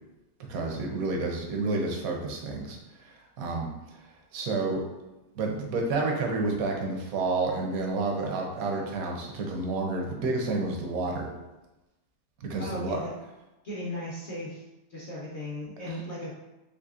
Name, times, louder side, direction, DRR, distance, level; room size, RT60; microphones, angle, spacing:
voice 1, 0.5-4.8 5.3-11.3 12.4-13.0 15.9-16.0, right 3 dB, 65° right, 1 dB, 0.9 m, -30 dB
voice 2, 12.6-13.1 13.6-14.6 14.9-16.3, left 1 dB, 55° left, -6 dB, 0.8 m, -36 dB
4.0 x 3.0 x 2.4 m, 1.0 s
omnidirectional pair, 1.9 m